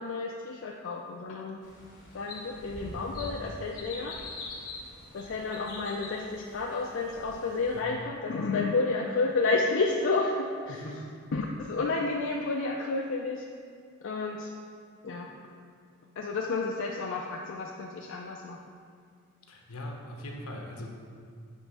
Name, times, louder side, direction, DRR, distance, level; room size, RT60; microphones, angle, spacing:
voice 1, 0.0-1.6 2.1-4.2 5.1-10.8 11.3-13.4 14.0-14.5 15.0-15.3 16.2-18.6, left 3 dB, 60° left, 0 dB, 0.4 m, -31 dB
sound 1, 1.6-7.8, left 2 dB, 40° left, 1.4 m, -44 dB
voice 2, 7.7-8.1 10.7-11.1 19.5-20.9, left 1 dB, 75° left, 1 dB, 1.0 m, -40 dB
8.2 x 3.4 x 5.5 m, 2.2 s
head